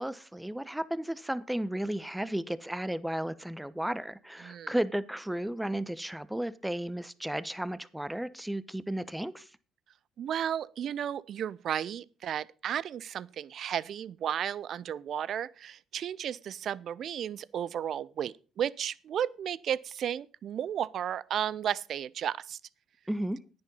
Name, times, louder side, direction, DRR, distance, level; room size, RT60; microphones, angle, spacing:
voice 1, 0.0-9.4 23.1-23.4, right 1 dB, 5° right, 1.0 m, -34 dB
voice 2, 4.4-4.7 10.2-22.6, right 9 dB, 55° right, 0.5 m, -33 dB
10.5 x 9.9 x 5.4 m
hypercardioid pair, 55°, 0 cm